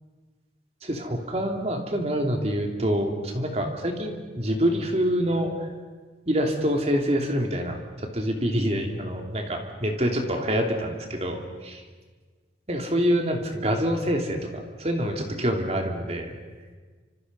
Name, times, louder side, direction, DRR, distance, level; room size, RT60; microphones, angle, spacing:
voice 1, 0.8-5.7 6.3-11.8 12.7-16.3, equal, 35° right, 3 dB, 2.9 m, -26 dB
28.5 x 26.0 x 5.5 m, 1.4 s
head